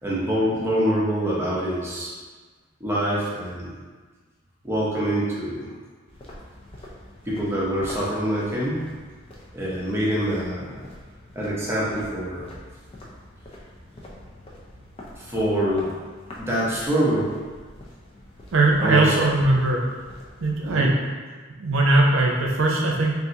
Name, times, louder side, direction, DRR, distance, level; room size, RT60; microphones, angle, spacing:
voice 1, 0.0-2.1 2.8-3.7 4.6-5.7 7.3-8.9 9.5-10.8 11.3-12.5 15.1-15.9 16.4-17.4 18.8-19.1 20.6-21.0, equal, 10° right, -7 dB, 0.7 m, -25 dB
sound 1, 6.1-20.9, left 1 dB, 30° left, 0.5 m, -44 dB
voice 2, 18.5-19.8 20.4-20.9 21.6-23.1, right 2 dB, 75° right, -2 dB, 0.6 m, -20 dB
3.6 x 2.5 x 2.8 m, 1.4 s
head